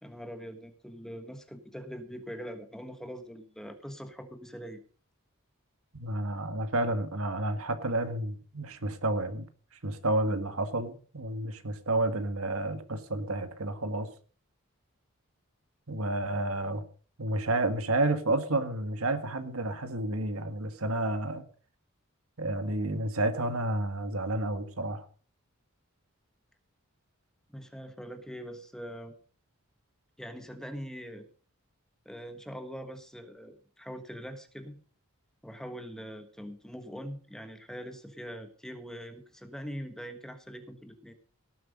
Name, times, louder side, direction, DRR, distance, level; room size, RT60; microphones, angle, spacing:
voice 1, 0.0-4.8 27.5-29.1 30.2-31.3 32.0-34.8 35.4-41.1, equal, 5° left, 8 dB, 1.3 m, -42 dB
voice 2, 5.9-9.5 9.8-14.1 15.9-16.8 17.2-21.4 22.4-25.0, right 2 dB, 75° right, 9 dB, 1.6 m, -30 dB
17.5 x 8.0 x 5.2 m, 0.41 s
head